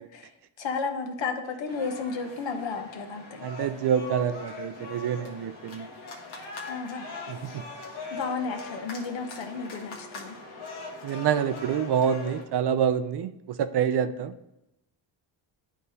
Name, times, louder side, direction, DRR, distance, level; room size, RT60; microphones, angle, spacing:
voice 1, 0.6-3.4 6.7-7.1 8.1-10.4, left 4 dB, 70° left, 5 dB, 1.0 m, -33 dB
sound 1, 1.7-12.4, left 3 dB, 85° left, 1.4 m, -41 dB
voice 2, 3.4-5.9 7.3-7.6 11.0-14.3, right 8 dB, 60° right, 12 dB, 0.5 m, -27 dB
10.5 x 4.0 x 2.7 m, 0.89 s
cardioid pair, 110°, 47 cm